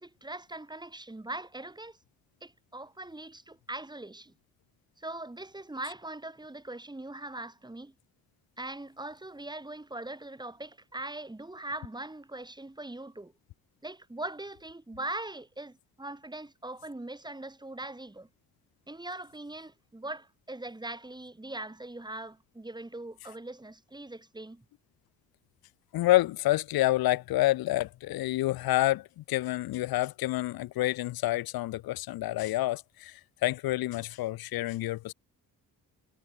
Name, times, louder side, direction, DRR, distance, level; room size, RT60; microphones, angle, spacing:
voice 1, 0.0-2.0 2.4-4.3 5.0-7.9 8.6-13.3 13.8-18.3 18.9-24.6, right 2 dB, 10° right, 2.0 m, -41 dB
voice 2, 25.9-35.1, left 16 dB, 85° left, 0.6 m, -28 dB
cardioid pair, 80°, 35 cm